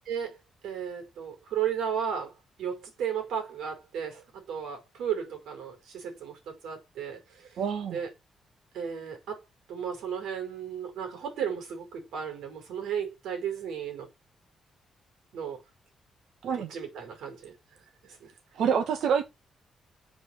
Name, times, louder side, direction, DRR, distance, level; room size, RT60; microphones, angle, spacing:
voice 1, 0.1-0.4 0.6-2.3 2.6-7.6 7.9-8.1 8.7-9.4 9.7-14.1 15.3-15.6 16.5-17.5 18.0-18.3, right 8 dB, 90° right, 5.5 m, -34 dB
voice 2, 7.6-8.0 16.4-16.7 18.6-19.2, right 7 dB, 70° right, 1.9 m, -26 dB
8.0 x 5.1 x 7.4 m
cardioid pair, 150°, 0 cm